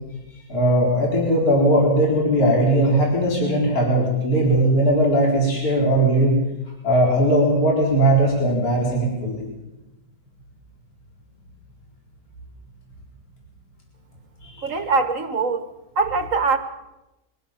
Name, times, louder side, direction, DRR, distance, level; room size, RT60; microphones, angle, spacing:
voice 1, 0.5-6.4 6.8-9.4 14.4-14.7, right 1 dB, 55° left, -2 dB, 4.8 m, -19 dB
voice 2, 14.6-15.6 16.0-16.6, right 4 dB, 50° right, 9 dB, 1.8 m, -22 dB
23.5 x 16.0 x 7.4 m, 0.97 s
omnidirectional pair, 1.9 m